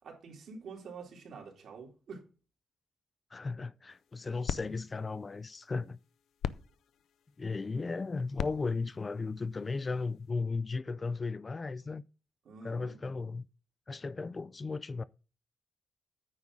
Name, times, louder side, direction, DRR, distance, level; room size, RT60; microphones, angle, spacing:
voice 1, 0.0-2.2 12.4-13.0, right 5 dB, 70° right, 2.9 m, -47 dB
voice 2, 3.3-6.0 7.4-12.0 12.6-13.5 13.9-15.0, left 4 dB, 25° left, 0.3 m, -35 dB
sound 1, 3.9-10.3, left 9 dB, 90° left, 0.4 m, -43 dB
9.4 x 3.7 x 6.1 m
cardioid pair, 130°, 0 cm